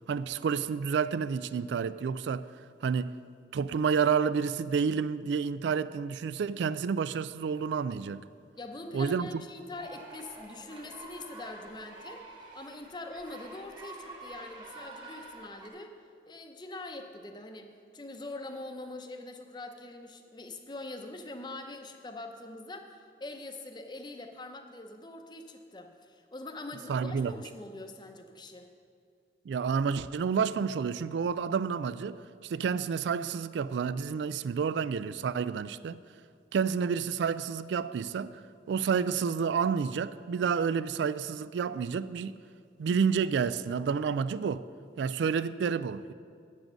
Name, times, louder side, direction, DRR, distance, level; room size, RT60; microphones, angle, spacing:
voice 1, 0.1-2.5 2.8-3.2 3.5-8.2 8.9-9.3 26.9-27.3 29.5-32.2 32.4-36.0 36.5-38.4 38.7-42.4 42.8-44.6 45.0-46.1, right 6 dB, 80° right, 0.3 m, -29 dB
voice 2, 8.5-12.2 12.5-16.0 16.3-28.7, left 2 dB, 25° left, 0.7 m, -43 dB
sound 1, 9.7-15.7, right 2 dB, 25° right, 1.4 m, -48 dB
9.1 x 7.4 x 6.2 m
head